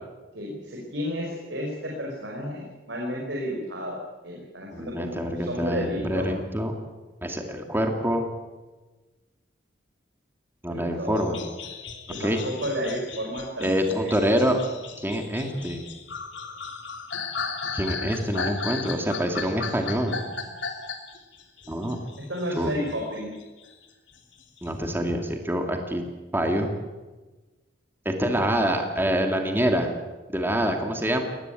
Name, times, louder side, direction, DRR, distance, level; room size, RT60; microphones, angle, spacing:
voice 1, 0.3-4.0 4.2-6.3 10.7-11.4 12.1-14.2 22.3-23.3, equal, 70° right, -1 dB, 5.0 m, -32 dB
voice 2, 4.7-6.8 7.2-8.3 10.6-11.4 12.2-12.4 13.6-14.6 15.0-15.8 17.7-20.2 21.7-22.0 22.6-22.7 24.6-26.0 26.3-26.7 28.1-29.9 30.3-31.2, equal, 10° right, 4 dB, 2.3 m, -26 dB
sound 1, 11.2-23.0 23.3-24.7, left 5 dB, 75° left, 3.4 m, -36 dB
21.0 x 19.0 x 9.1 m, 1.2 s
head